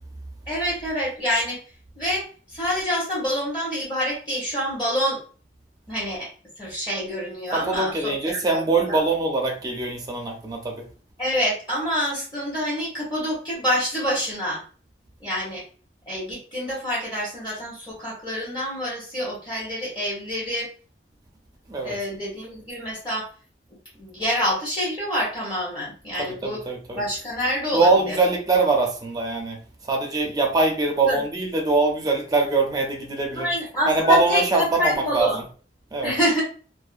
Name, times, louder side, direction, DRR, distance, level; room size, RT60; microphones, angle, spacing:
voice 1, 0.5-1.6 2.0-5.2 5.9-6.3 6.6-9.0 11.2-14.6 15.2-15.6 16.1-20.7 21.8-23.3 24.0-26.6 26.9-28.2 31.0-31.2 33.3-35.4 36.0-36.4, equal, 25° left, -6 dB, 0.9 m, -27 dB
voice 2, 7.5-10.8 21.7-22.0 26.2-27.0 27.7-29.6 29.9-33.5 33.9-35.3 35.9-36.2, right 3 dB, 20° right, 1 dB, 0.5 m, -22 dB
2.5 x 2.0 x 2.4 m, 0.39 s
head